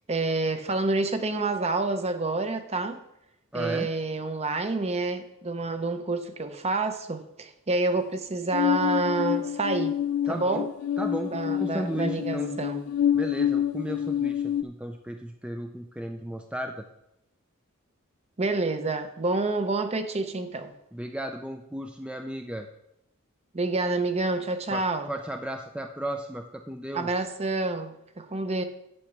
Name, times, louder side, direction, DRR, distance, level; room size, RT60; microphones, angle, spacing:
voice 1, 0.1-3.0 3.5-9.9 10.3-10.7 11.3-12.8 18.4-20.7 23.5-25.1 26.9-28.6, right 3 dB, 30° right, 8 dB, 0.8 m, -28 dB
voice 2, 3.5-3.9 10.3-10.7 11.0-12.6 13.1-16.8 20.9-22.7 24.7-27.2, right 1 dB, 5° right, 5 dB, 0.5 m, -35 dB
sound 1, 8.5-14.6, left 9 dB, 85° left, 0.3 m, -27 dB
8.8 x 5.9 x 6.6 m, 0.83 s
head